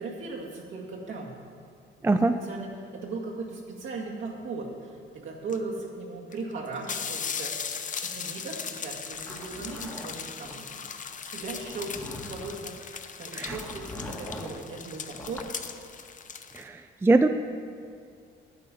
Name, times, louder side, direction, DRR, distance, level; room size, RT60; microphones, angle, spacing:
voice 1, 0.0-1.3 2.0-10.8 11.2-15.5, right 3 dB, 75° right, -3 dB, 2.0 m, -38 dB
sound 1, 5.5-5.6 6.3-6.4 6.7-16.6, left 6 dB, 40° left, 0.7 m, -38 dB
Zipper (clothing), 9.1-10.6 11.4-12.6 13.5-14.6 15.1-15.6, left 1 dB, 10° left, 1.2 m, -42 dB
voice 2, 16.5-17.3, right 2 dB, 10° right, 8 dB, 0.4 m, -22 dB
9.3 x 8.5 x 5.3 m, 2.3 s
cardioid pair, 90°, 20 cm